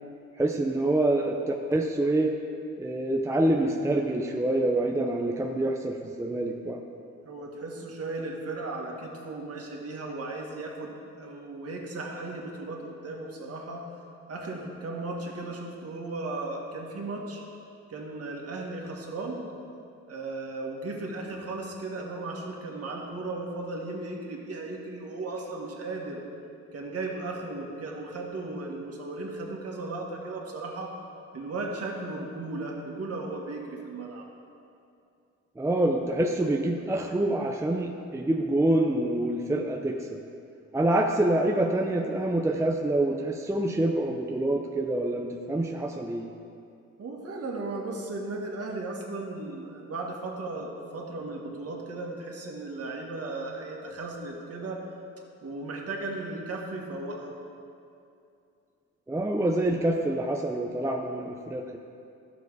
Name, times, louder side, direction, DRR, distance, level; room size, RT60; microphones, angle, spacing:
voice 1, 0.4-2.4 2.8-6.8 35.6-40.2 40.7-46.3 59.1-61.8, right 1 dB, 10° right, 2 dB, 0.6 m, -26 dB
voice 2, 7.2-10.9 11.2-13.8 14.3-17.4 17.9-19.4 20.1-26.2 26.7-30.9 31.3-34.3 47.0-54.8 55.4-57.3, right 2 dB, 50° right, 0 dB, 1.9 m, -36 dB
12.5 x 6.9 x 4.9 m, 2.6 s
cardioid pair, 90°, 30 cm